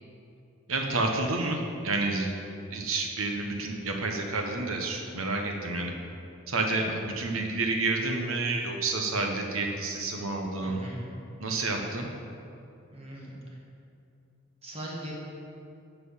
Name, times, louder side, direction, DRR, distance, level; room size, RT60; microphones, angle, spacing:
voice 1, 0.7-2.3 2.7-5.9 6.5-10.8 11.4-12.1, right 3 dB, 90° right, 3 dB, 1.2 m, -29 dB
voice 2, 10.6-11.0 12.9-13.3 14.6-15.1, right 1 dB, 30° right, -4 dB, 1.8 m, -39 dB
11.5 x 4.7 x 7.1 m, 2.6 s
head